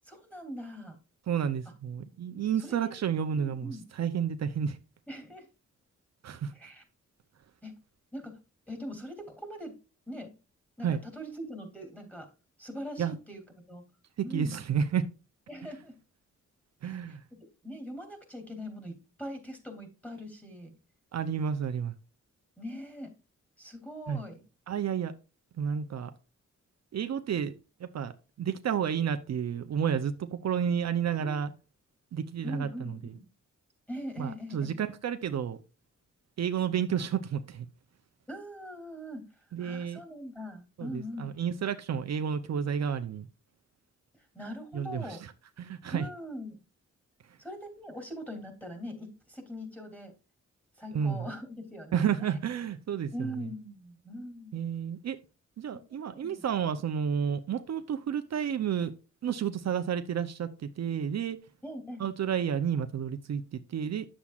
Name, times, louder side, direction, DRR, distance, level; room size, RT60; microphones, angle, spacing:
voice 1, 0.0-1.0 2.6-2.8 3.3-3.8 5.1-5.5 6.5-6.8 7.6-7.8 8.1-8.4 8.7-9.8 10.1-10.3 10.8-12.3 12.6-13.9 14.2-14.6 15.5-16.0 16.8-20.7 22.6-23.1 23.6-24.4 31.2-31.4 32.4-33.3 33.9-34.8 38.3-41.3 44.2-45.2 45.9-46.6 47.4-50.1 50.8-52.4 53.1-54.6 55.7-56.4 61.6-62.0, equal, 5° left, 3.0 m, -42 dB
voice 2, 1.3-4.8 6.2-6.5 10.8-11.0 13.0-13.2 14.3-15.0 16.8-17.2 21.1-21.9 24.1-24.2 24.7-25.1 25.6-26.1 26.9-27.5 27.8-28.1 28.4-31.5 32.1-33.1 34.2-35.6 36.4-37.7 39.5-40.0 40.8-43.3 44.7-45.2 45.6-46.0 50.9-51.3 51.9-53.1 54.5-55.2 55.6-58.9 59.2-61.4 62.0-64.1, right 8 dB, 65° right, 0.7 m, -31 dB
10.0 x 7.2 x 2.4 m
wide cardioid pair, 125°, 29 cm